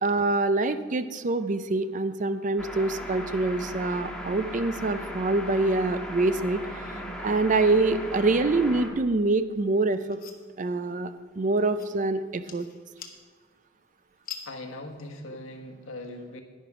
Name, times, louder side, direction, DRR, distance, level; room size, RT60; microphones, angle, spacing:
voice 1, 0.0-6.9 7.2-10.2 10.6-11.1 11.4-12.7, right 2 dB, 40° right, 11 dB, 0.5 m, -25 dB
sound 1, 2.6-8.9, equal, 5° left, 1.4 m, -37 dB
sound 2, 9.5-15.2, left 7 dB, 45° left, 1.1 m, -48 dB
voice 2, 14.4-16.4, left 1 dB, 85° left, 3 dB, 1.4 m, -40 dB
10.5 x 10.5 x 4.9 m, 1.5 s
head